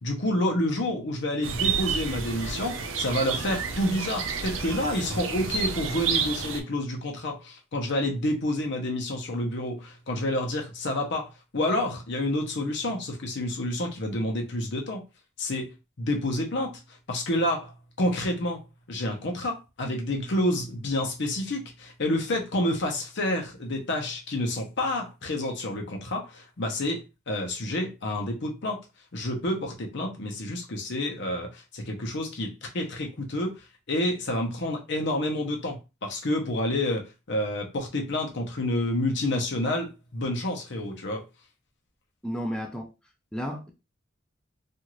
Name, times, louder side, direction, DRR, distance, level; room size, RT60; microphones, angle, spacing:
voice 1, 0.0-15.0 15.4-16.8 17.1-17.7 18.0-18.6 18.9-28.8 29.1-33.5 33.9-41.2, left 1 dB, 65° left, 0.8 m, -29 dB
sound 1, 1.4-6.6, right 6 dB, 80° right, 0.6 m, -30 dB
voice 2, 42.2-42.9 43.3-43.7, equal, 5° left, 0.4 m, -32 dB
2.6 x 2.4 x 3.0 m
head